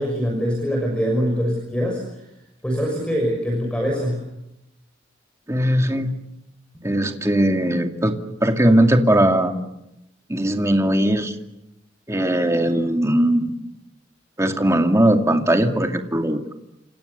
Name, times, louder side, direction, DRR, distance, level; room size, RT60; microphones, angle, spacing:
voice 1, 0.0-2.0 2.6-4.2, equal, 5° left, 1 dB, 6.4 m, -23 dB
voice 2, 5.5-6.1 6.8-8.1 8.4-9.5 10.3-11.3 12.1-13.5 14.4-16.4, right 1 dB, 15° right, 4 dB, 2.4 m, -19 dB
30.0 x 27.5 x 7.0 m, 0.87 s
head